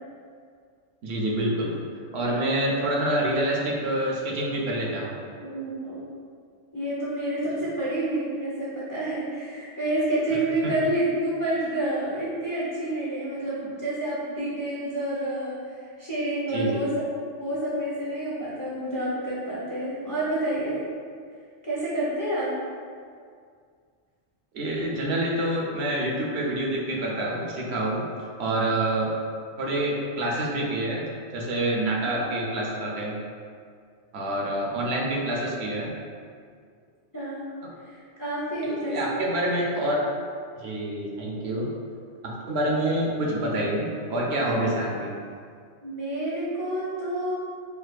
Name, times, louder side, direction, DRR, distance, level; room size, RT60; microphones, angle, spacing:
voice 1, 1.0-1.8 2.1-5.2 10.6-10.7 16.5-16.8 24.5-28.1 28.4-29.1 29.6-31.1 31.3-33.2 34.1-35.9 37.6-37.7 38.6-40.0 40.6-41.7 42.2-45.1, right 1 dB, 70° right, -2 dB, 0.8 m, -27 dB
voice 2, 5.4-6.0 6.7-16.9 17.4-20.8 21.6-22.6 32.0-32.4 37.1-37.4 37.8-39.2 45.8-47.3, right 1 dB, 25° left, -8 dB, 0.5 m, -29 dB
4.4 x 2.4 x 2.4 m, 2.1 s
omnidirectional pair, 1.2 m